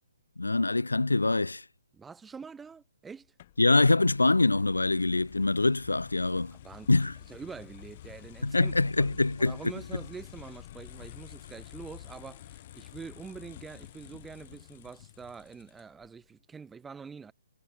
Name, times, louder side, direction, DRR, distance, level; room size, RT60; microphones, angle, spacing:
voice 1, 0.4-1.6 3.6-6.6 6.9-7.2 8.4-9.6, left 2 dB, 85° left, 1.1 m, -24 dB
voice 2, 1.9-3.3 6.6-6.9 7.3-17.3, right 5 dB, 10° right, 1.8 m, -45 dB
sound 1, 3.4-16.1, left 13 dB, 40° left, 2.3 m, -49 dB
figure-of-eight pair, 135°, 0 cm